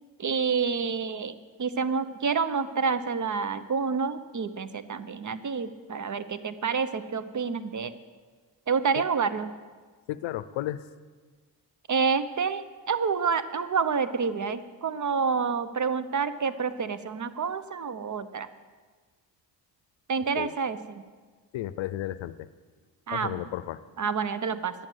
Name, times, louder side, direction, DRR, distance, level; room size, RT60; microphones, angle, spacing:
voice 1, 0.2-8.0 8.7-9.5 11.9-18.5 20.1-20.8 23.1-23.4 24.0-24.7, right 5 dB, 40° right, 14 dB, 0.9 m, -28 dB
voice 2, 10.1-10.9 20.3-20.5 21.5-22.5 23.1-23.8, left 14 dB, 80° left, 15 dB, 0.6 m, -33 dB
11.5 x 8.9 x 7.9 m, 1.5 s
cardioid pair, 60°, 46 cm